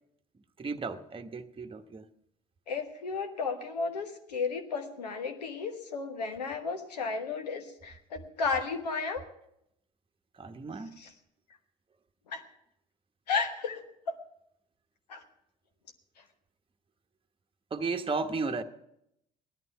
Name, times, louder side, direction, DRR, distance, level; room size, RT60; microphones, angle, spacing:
voice 1, 0.6-2.0 10.4-10.9 17.7-18.6, right 4 dB, 25° right, 6 dB, 1.1 m, -34 dB
voice 2, 2.7-9.2 11.0-11.1 12.3-12.4 13.3-14.1 15.1-15.2, left 4 dB, 90° left, 6 dB, 1.2 m, -33 dB
17.0 x 11.5 x 5.7 m, 0.78 s
hypercardioid pair, 55°, 20 cm